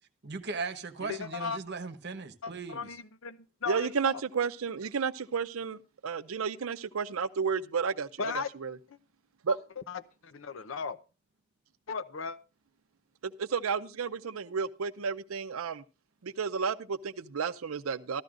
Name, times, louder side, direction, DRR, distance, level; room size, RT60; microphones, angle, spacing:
voice 1, 0.2-3.0, right 4 dB, 55° right, 1.1 m, -38 dB
voice 2, 1.0-1.6 2.4-4.2 8.2-8.5 9.5-11.0 11.9-12.4, left 5 dB, 65° left, 0.7 m, -37 dB
voice 3, 3.7-8.8 9.4-9.6 13.2-15.8 16.2-18.2, right 6 dB, 85° right, 0.6 m, -32 dB
14.0 x 13.0 x 2.5 m
head